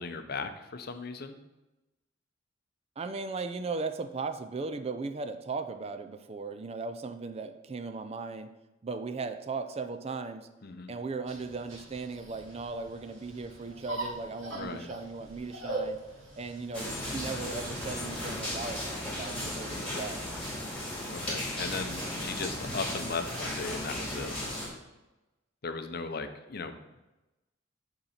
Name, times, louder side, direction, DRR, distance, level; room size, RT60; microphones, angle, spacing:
voice 1, 0.0-1.4 10.6-10.9 14.5-14.9 19.7-20.0 21.1-24.3 25.6-27.0, left 4 dB, 50° left, 9 dB, 0.6 m, -37 dB
voice 2, 3.0-8.5 8.8-10.5 10.9-16.0 16.3-20.2, right 4 dB, 30° right, 8 dB, 0.4 m, -37 dB
sound 1, 11.3-18.4, right 2 dB, 80° right, 2.0 m, -42 dB
sound 2, 16.7-24.7, left 1 dB, 5° left, 2.3 m, -35 dB
7.0 x 3.9 x 5.6 m, 1.0 s
head